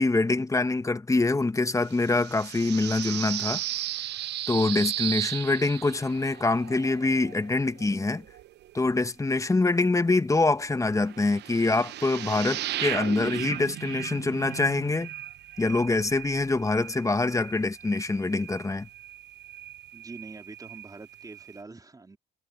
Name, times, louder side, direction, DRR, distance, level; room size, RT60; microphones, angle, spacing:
voice 1, 0.0-3.6 4.5-8.2 8.7-15.1 15.6-18.9, left 3 dB, 15° left, 1.4 m, -25 dB
sound 1, 1.8-9.0 10.5-21.6, right 14 dB, 60° right, 0.7 m, -37 dB
voice 2, 19.9-22.2, right 3 dB, 20° right, 3.9 m, -45 dB
supercardioid pair, 75°, 20 cm